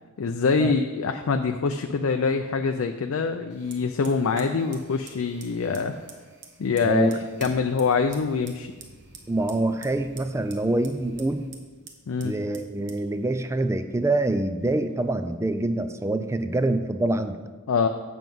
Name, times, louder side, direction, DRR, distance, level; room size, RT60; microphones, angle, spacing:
voice 1, 0.2-6.0 6.6-7.1 7.4-8.7 12.1-12.3 17.7-17.9, left 5 dB, 70° left, 6 dB, 0.4 m, -24 dB
Fire, 3.5-15.3, right 4 dB, 55° right, 1.0 m, -49 dB
voice 2, 6.8-7.2 9.3-11.5 12.2-17.5, right 2 dB, 15° right, 9 dB, 0.4 m, -25 dB
7.7 x 6.1 x 5.3 m, 1.4 s
head